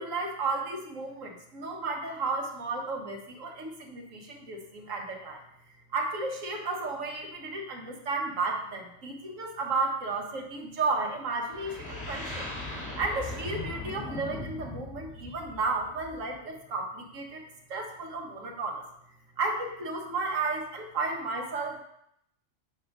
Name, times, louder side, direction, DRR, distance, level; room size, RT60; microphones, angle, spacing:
voice 1, 0.0-5.4 5.9-12.5 12.9-17.4 17.7-18.8 19.4-21.8, right 3 dB, 75° right, 1 dB, 1.6 m, -33 dB
sound 1, 11.5-16.3, left 2 dB, 85° left, 2.7 m, -39 dB
7.0 x 4.9 x 5.1 m, 0.75 s
omnidirectional pair, 1.4 m